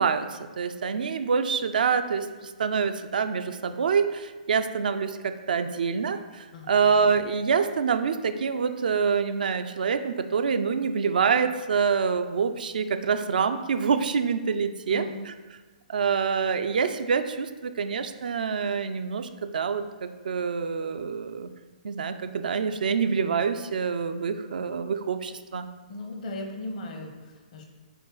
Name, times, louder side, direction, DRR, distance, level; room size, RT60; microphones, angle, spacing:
voice 1, 0.0-15.3 15.9-21.5 21.8-25.7, right 6 dB, 75° right, 9 dB, 0.4 m, -26 dB
voice 2, 25.9-27.6, left 1 dB, 55° left, 3 dB, 0.9 m, -37 dB
5.1 x 2.6 x 3.8 m, 1.3 s
hypercardioid pair, 130°, 5 cm